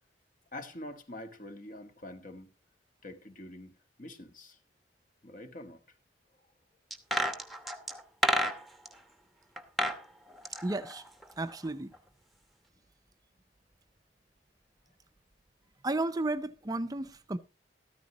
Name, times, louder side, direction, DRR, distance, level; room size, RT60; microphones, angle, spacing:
voice 1, 0.5-2.5 3.0-4.6 5.2-5.8 6.4-6.5, left 1 dB, 50° left, 1.6 m, -45 dB
sound 1, 6.9-8.9 9.6-10.0 10.3-11.7 11.9-12.0, equal, ahead, 0.9 m, -31 dB
voice 2, 10.6-11.0 11.4-11.9 15.8-17.4, right 2 dB, 20° right, 0.5 m, -33 dB
13.5 x 13.5 x 2.9 m
head